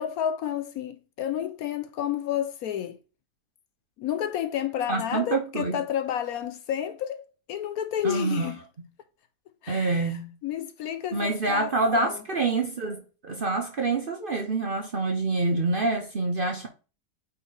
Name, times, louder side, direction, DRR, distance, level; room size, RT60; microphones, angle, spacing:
voice 1, 0.0-3.0 4.0-8.6 9.6-10.1 10.4-12.2, left 10 dB, 70° left, 0.9 m, -31 dB
voice 2, 4.9-5.8 8.0-8.5 9.7-10.3 11.1-16.7, right 3 dB, 45° right, 0.8 m, -26 dB
8.7 x 3.3 x 3.9 m
omnidirectional pair, 1.8 m